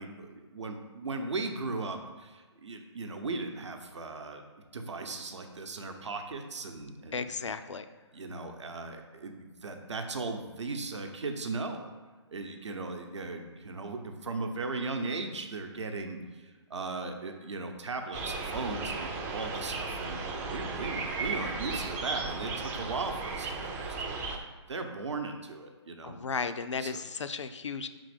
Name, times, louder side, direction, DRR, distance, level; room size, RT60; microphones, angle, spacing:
voice 1, 0.0-4.4 4.7-7.3 8.1-11.8 12.3-26.2 26.8-27.0, right 3 dB, 75° right, 4 dB, 0.8 m, -37 dB
voice 2, 7.1-7.9 26.0-27.9, left 5 dB, 80° left, 10 dB, 0.5 m, -34 dB
sound 1, 18.1-24.4, right 4 dB, 10° right, 0.4 m, -35 dB
5.2 x 3.8 x 4.9 m, 1.3 s
figure-of-eight pair, 145°, 15 cm